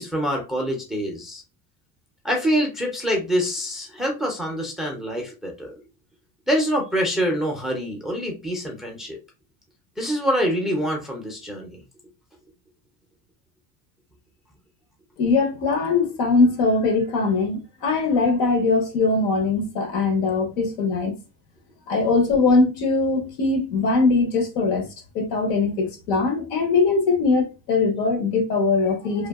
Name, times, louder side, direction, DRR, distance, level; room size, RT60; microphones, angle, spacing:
voice 1, 0.0-1.4 2.2-5.8 6.5-9.2 10.0-11.8, equal, ahead, 0.4 m, -25 dB
voice 2, 15.2-21.1 21.9-24.9 25.1-29.3, left 3 dB, 75° left, 1.0 m, -21 dB
2.6 x 2.3 x 2.3 m
cardioid pair, 140°, 36 cm